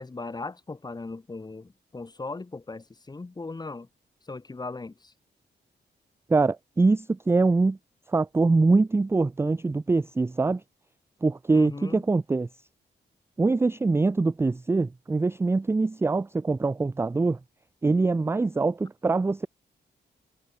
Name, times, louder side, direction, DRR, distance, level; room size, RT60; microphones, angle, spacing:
voice 1, 0.0-3.9 4.3-5.1 11.5-12.1, left 3 dB, 20° left, 6.4 m, -38 dB
voice 2, 6.3-7.8 8.1-10.6 11.2-12.5 13.4-17.4 17.8-19.5, right 3 dB, 15° right, 0.4 m, -23 dB
wide cardioid pair, 170°, 19 cm